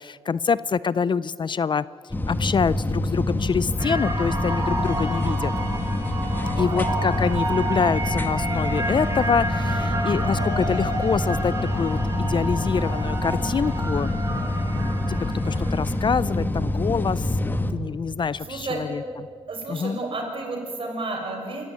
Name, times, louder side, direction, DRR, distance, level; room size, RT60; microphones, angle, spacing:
voice 1, 0.0-1.8 2.3-5.5 6.6-14.1 14.7-15.2 15.4-19.0 19.7-20.0, left 6 dB, 45° left, 19 dB, 0.5 m, -26 dB
sound 1, 2.1-17.7, left 1 dB, 15° left, 1.4 m, -26 dB
sound 2, 3.8-16.1, right 2 dB, 30° right, 3.7 m, -31 dB
voice 2, 6.4-6.9 15.1-15.2 18.4-18.8 19.5-21.6, right 3 dB, 50° right, 1 dB, 6.3 m, -32 dB
24.5 x 15.0 x 9.5 m, 2.4 s
cardioid pair, 80°, 11 cm